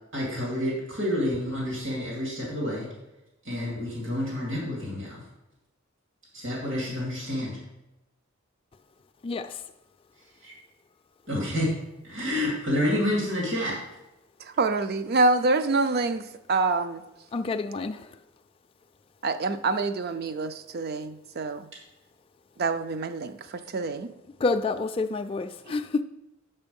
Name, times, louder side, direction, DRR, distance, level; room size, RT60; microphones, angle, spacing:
voice 1, 0.1-2.9 3.4-5.2 6.3-7.6 10.4-10.5 11.3-11.7 12.0-13.8, left 1 dB, 70° right, -4 dB, 2.6 m, -29 dB
voice 2, 9.2-9.6 17.3-18.1 24.4-26.0, left 3 dB, 25° left, 6 dB, 0.3 m, -28 dB
voice 3, 14.5-16.2 16.5-17.0 19.2-21.6 22.6-24.1, right 3 dB, 50° right, 11 dB, 0.5 m, -26 dB
6.9 x 5.5 x 5.3 m, 0.94 s
head